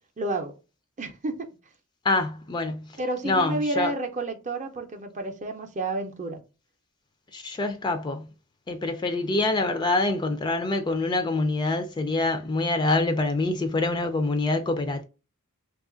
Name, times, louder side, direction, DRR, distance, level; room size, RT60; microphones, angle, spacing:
voice 1, 0.2-0.6 1.0-1.5 3.0-6.4, right 2 dB, 35° right, 0.6 m, -30 dB
voice 2, 2.0-2.9 3.2-3.9 7.3-8.2 8.7-15.0, left 2 dB, 20° left, 0.3 m, -25 dB
2.9 x 2.4 x 3.7 m
head